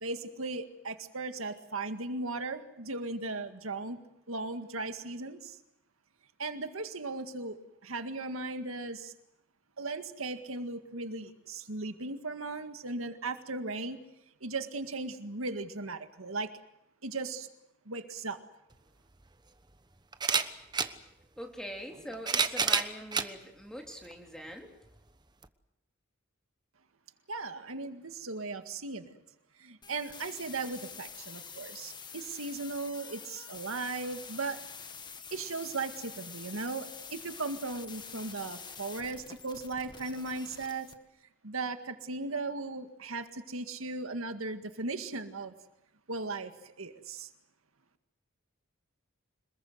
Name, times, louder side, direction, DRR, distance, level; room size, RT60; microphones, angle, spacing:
voice 1, 0.0-4.0 4.3-5.6 6.4-9.1 9.8-14.0 14.4-16.5 17.0-17.5 17.9-18.4 27.3-29.2 29.6-34.6 35.3-40.9 41.4-45.5 46.1-46.5 46.8-47.3, right 3 dB, 85° right, 7 dB, 1.9 m, -37 dB
sound 1, 18.7-18.8 20.1-20.9 21.9-23.3 24.0-24.1 25.4-25.5, right 5 dB, 20° right, 1.1 m, -28 dB
voice 2, 21.4-24.7, equal, 5° left, 2 dB, 3.5 m, -43 dB
sound 2, 29.8-40.9, left 6 dB, 20° left, 1.6 m, -47 dB
26.5 x 21.0 x 8.0 m, 0.82 s
head